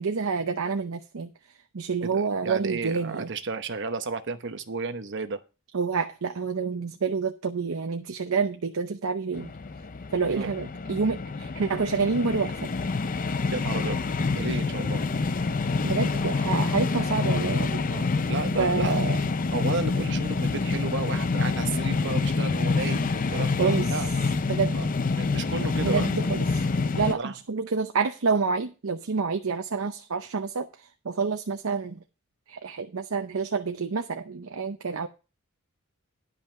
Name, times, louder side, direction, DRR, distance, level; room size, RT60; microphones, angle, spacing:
voice 1, 0.0-1.3 1.7-3.3 5.7-9.5 10.1-12.7 15.8-17.8 18.6-19.2 23.6-23.9 24.5-24.8 25.8-26.7 27.0-32.0 32.5-35.1, right 5 dB, 85° right, 0.7 m, -28 dB
voice 2, 2.0-5.4 10.3-10.5 13.5-14.0 14.3-15.0 17.9-19.0 19.5-24.1 24.7-24.9 25.1-26.1 27.0-27.4, right 3 dB, 60° right, 0.9 m, -33 dB
sound 1, 9.3-27.1, left 4 dB, 40° left, 0.5 m, -27 dB
11.0 x 5.6 x 5.7 m
head